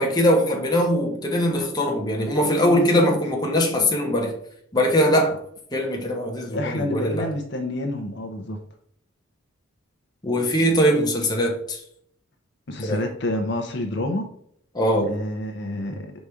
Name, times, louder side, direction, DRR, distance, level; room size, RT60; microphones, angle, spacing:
voice 1, 0.0-4.3 4.7-5.4 5.7-7.3 10.2-11.8 12.8-13.0 14.7-15.1, equal, 20° left, 0 dB, 1.1 m, -21 dB
voice 2, 2.7-3.1 6.5-8.6 12.7-14.3 15.0-16.1, left 1 dB, 55° left, 4 dB, 0.7 m, -28 dB
4.9 x 4.1 x 4.8 m, 0.66 s
head